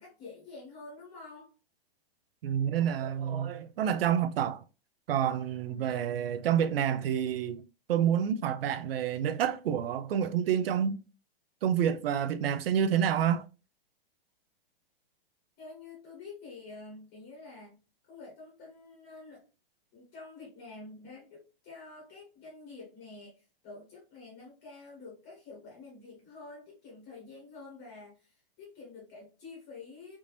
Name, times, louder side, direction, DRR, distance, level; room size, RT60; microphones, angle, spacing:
voice 1, 0.0-1.5 4.1-4.2 5.2-6.0 15.6-17.8 18.1-19.4 19.9-30.2, left 3 dB, 20° left, 0.9 m, -48 dB
voice 2, 2.4-4.6 5.1-7.6 7.9-11.0 11.6-13.5, right 9 dB, 75° right, 0.5 m, -28 dB
3.5 x 2.6 x 2.9 m
hypercardioid pair, 180°, 29 cm